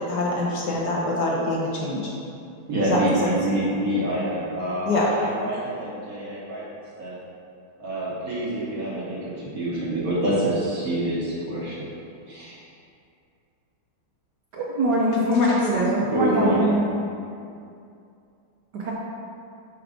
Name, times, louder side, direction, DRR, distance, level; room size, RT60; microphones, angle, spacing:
voice 1, 0.0-2.1 2.8-3.3 4.9-5.1 15.3-15.9, left 2 dB, 65° left, -4 dB, 1.3 m, -24 dB
voice 2, 2.7-6.6 7.0-7.1 7.8-11.9 12.3-12.6 16.1-16.7, right 1 dB, 50° right, -7 dB, 1.5 m, -26 dB
voice 3, 14.5-16.9 18.7-18.9, right 1 dB, 65° right, -4 dB, 1.1 m, -23 dB
5.0 x 4.6 x 4.9 m, 2.5 s
omnidirectional pair, 2.2 m